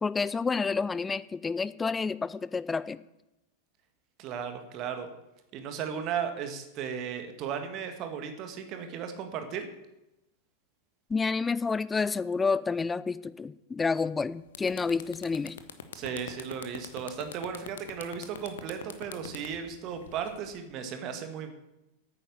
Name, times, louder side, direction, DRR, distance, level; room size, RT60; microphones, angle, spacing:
voice 1, 0.0-3.0 11.1-15.6, left 4 dB, 15° left, 17 dB, 0.5 m, -29 dB
voice 2, 4.2-5.1 5.5-9.7 15.9-21.5, right 7 dB, 40° right, 7 dB, 1.7 m, -35 dB
sound 1, 14.0-14.2 14.5-20.6, left 8 dB, 65° left, 1.1 m, -43 dB
9.2 x 9.0 x 7.1 m, 0.92 s
figure-of-eight pair, 90°, 0 cm